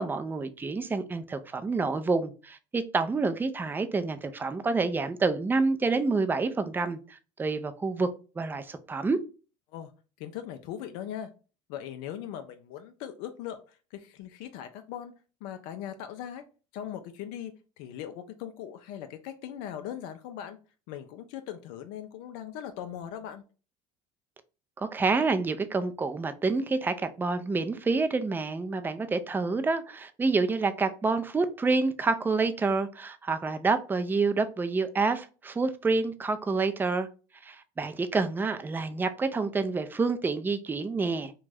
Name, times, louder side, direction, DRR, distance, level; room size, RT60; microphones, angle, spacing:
voice 1, 0.0-8.1 8.4-9.2 24.8-37.1 37.4-41.3, right 4 dB, 15° right, 0.3 m, -28 dB
voice 2, 10.2-11.3 11.7-15.1 15.4-16.4 16.7-20.6 20.9-23.4, left 10 dB, 75° left, 0.4 m, -39 dB
2.5 x 2.2 x 3.2 m
supercardioid pair, 85°, 15 cm